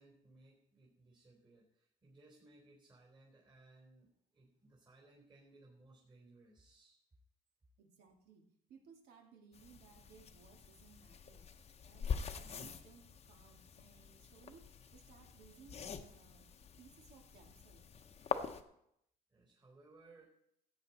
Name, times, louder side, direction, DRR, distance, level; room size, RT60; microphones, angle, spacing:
voice 1, 0.0-7.0 19.3-20.2, right 2 dB, 30° right, -1 dB, 3.5 m, -63 dB
voice 2, 7.8-11.5 11.8-16.5 16.8-17.9, right 6 dB, 75° right, 3 dB, 2.4 m, -62 dB
sound 1, 9.5-18.6, left 6 dB, 35° left, 0.9 m, -45 dB
14.5 x 8.9 x 4.2 m, 0.74 s
cardioid pair, 110°, 17 cm